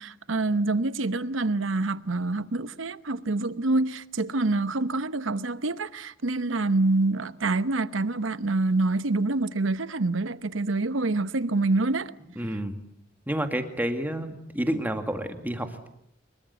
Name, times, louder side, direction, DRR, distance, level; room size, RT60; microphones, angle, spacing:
voice 1, 0.0-12.1, right 2 dB, 80° right, 0.9 m, -26 dB
voice 2, 12.4-12.8 13.3-15.9, right 1 dB, 10° right, 2.1 m, -29 dB
25.0 x 22.0 x 8.2 m
head